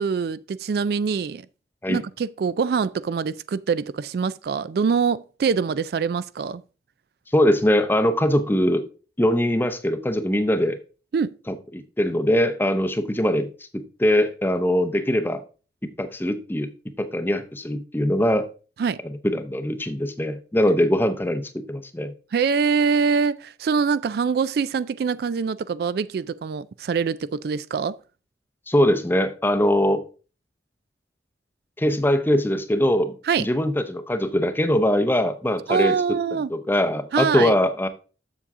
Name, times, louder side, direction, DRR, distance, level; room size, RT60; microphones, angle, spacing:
voice 1, 0.0-1.5 1.9-6.6 11.1-11.3 18.8-19.0 22.3-28.0 33.2-33.5 35.7-36.5 37.1-37.5, right 5 dB, 60° right, 0.3 m, -24 dB
voice 2, 7.3-8.8 9.2-10.8 11.5-13.5 13.7-15.4 16.0-16.7 17.0-18.5 19.2-22.1 28.7-30.0 31.8-35.9 36.5-37.9, left 1 dB, 10° left, 0.6 m, -22 dB
7.3 x 7.0 x 3.6 m
head